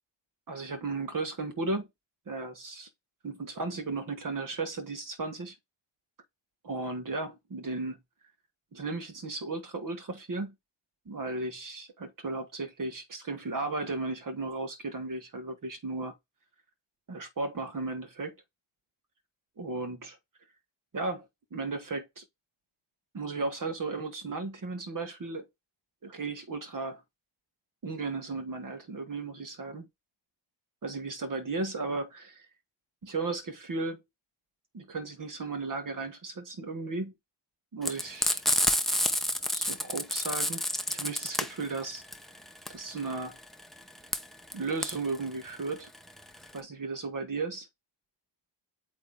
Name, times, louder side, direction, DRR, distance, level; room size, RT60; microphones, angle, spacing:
voice 1, 0.5-1.9 2.3-2.9 3.2-5.5 6.7-8.0 8.7-10.5 11.0-16.1 17.1-18.4 19.6-20.2 20.9-21.2 21.5-22.2 23.1-25.5 26.0-27.0 27.8-29.9 30.8-32.5 33.0-34.0 34.7-37.1 37.7-38.4 39.5-42.0 42.7-43.4 44.5-45.9 46.5-47.7, right 3 dB, 40° right, 1.5 m, -35 dB
Frying (food), 37.8-46.6, left 1 dB, ahead, 0.6 m, -29 dB
8.3 x 3.3 x 3.5 m
wide cardioid pair, 155°, 49 cm